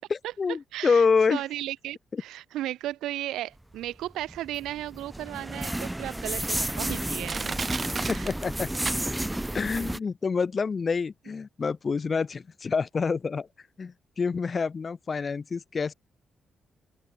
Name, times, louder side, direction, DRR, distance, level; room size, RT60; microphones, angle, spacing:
voice 1, 0.1-1.4 2.1-2.2 8.1-8.7 9.5-13.5 13.8-15.9, left 5 dB, 45° left, 0.3 m, -27 dB
voice 2, 0.7-7.5 8.1-8.3, right 14 dB, 85° right, 0.6 m, -35 dB
sound 1, 4.1-10.0, right 1 dB, 10° right, 1.1 m, -32 dB
Crushing, 5.2-5.3 5.9-6.0 6.7-6.8 7.2-9.4 9.8-9.9, right 4 dB, 40° right, 0.6 m, -34 dB
open air
supercardioid pair, 60°, 0 cm